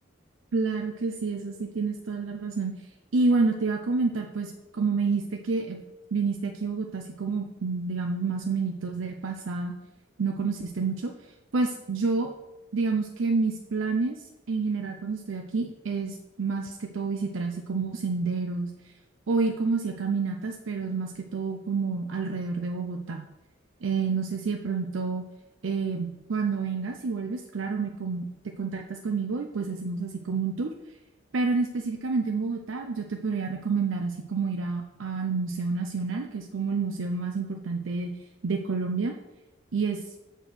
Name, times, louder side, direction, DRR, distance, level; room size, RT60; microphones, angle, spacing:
voice 1, 0.5-2.7 3.1-5.8 6.1-9.7 10.2-11.1 11.5-12.3 12.7-18.7 19.3-23.2 23.8-25.2 25.6-28.3 28.6-30.7 31.3-38.1 38.4-39.1 39.7-40.0, right 4 dB, 80° right, 3 dB, 0.6 m, -29 dB
6.7 x 4.5 x 6.0 m, 0.97 s
head